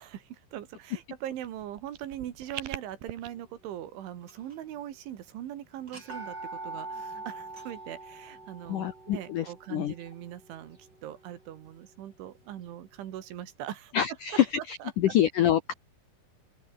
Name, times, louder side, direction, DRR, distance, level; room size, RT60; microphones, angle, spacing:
voice 1, 0.0-13.9 14.6-14.9, right 11 dB, 85° right, 4.5 m, -41 dB
sound 1, 1.4-3.3, right 12 dB, 60° right, 2.9 m, -42 dB
sound 2, 4.2-4.8 5.1-5.2 5.8-11.7, right 2 dB, 20° right, 6.3 m, -44 dB
voice 2, 8.7-9.9 13.9-15.7, left 11 dB, 75° left, 1.9 m, -26 dB
open air
omnidirectional pair, 5.3 m